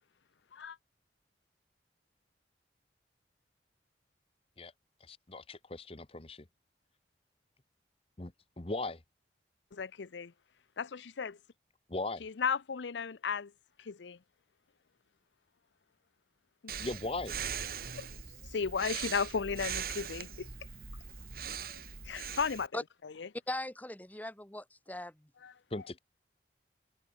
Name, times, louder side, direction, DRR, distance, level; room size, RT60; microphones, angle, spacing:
voice 1, 5.1-6.5 8.2-9.0 11.9-12.2 16.8-17.4 25.7-26.0, left 2 dB, 30° left, 1.1 m, -38 dB
voice 2, 9.7-10.3 10.8-11.4 12.2-13.5 13.8-14.2 18.0-18.1 18.5-20.5 21.5-23.3 25.4-25.5, left 6 dB, 85° left, 0.6 m, -35 dB
Breathing, 16.7-22.7, right 7 dB, 55° right, 3.2 m, -41 dB
voice 3, 23.5-25.3, left 1 dB, 10° left, 1.2 m, -39 dB
head